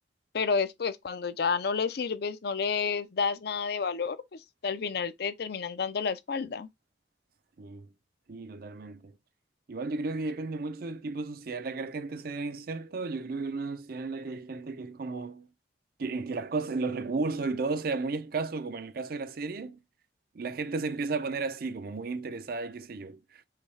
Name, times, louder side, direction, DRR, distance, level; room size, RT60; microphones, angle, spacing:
voice 1, 0.3-6.7, left 5 dB, 60° left, 0.5 m, -30 dB
voice 2, 7.6-7.9 8.3-9.1 9.7-15.5 16.0-19.8 20.3-23.4, right 3 dB, 55° right, 0.5 m, -34 dB
5.7 x 2.3 x 3.2 m
head